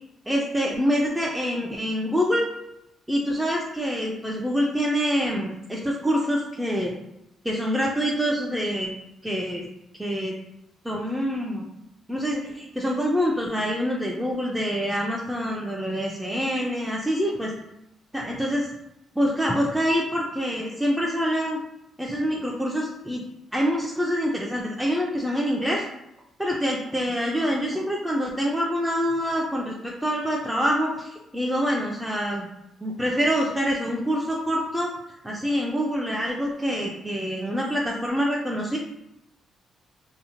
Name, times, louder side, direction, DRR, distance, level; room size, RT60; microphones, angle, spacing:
voice 1, 0.3-2.5 3.1-6.9 7.4-8.9 9.2-9.7 10.0-10.3 10.8-11.6 12.1-17.5 18.1-18.7 19.2-21.6 22.0-23.2 23.5-25.8 26.4-32.5 32.8-34.9 35.2-38.8, equal, 5° right, -2 dB, 0.3 m, -26 dB
2.6 x 2.0 x 2.8 m, 0.86 s
cardioid pair, 90°, 0 cm